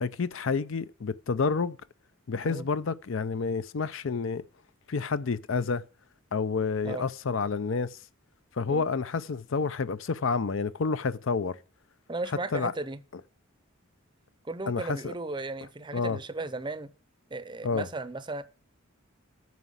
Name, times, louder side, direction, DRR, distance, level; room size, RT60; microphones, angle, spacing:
voice 1, 0.0-1.8 2.3-4.4 4.9-5.8 6.3-8.0 8.6-11.6 12.5-12.7 14.7-15.1 15.9-16.2 17.6-17.9, left 4 dB, 60° left, 0.5 m, -29 dB
voice 2, 12.1-13.0 14.4-16.9 17.3-18.4, right 2 dB, 20° right, 0.6 m, -35 dB
9.4 x 5.9 x 7.9 m
head